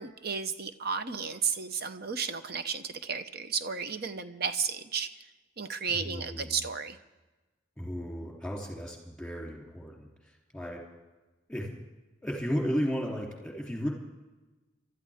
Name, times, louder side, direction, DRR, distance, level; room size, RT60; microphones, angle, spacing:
voice 1, 0.0-5.1 5.6-7.0, right 6 dB, 55° right, 10 dB, 0.9 m, -33 dB
voice 2, 5.9-6.7 7.8-10.8 11.5-11.8 12.2-13.9, equal, 5° left, -1 dB, 3.3 m, -34 dB
26.0 x 13.0 x 3.6 m, 1.2 s
head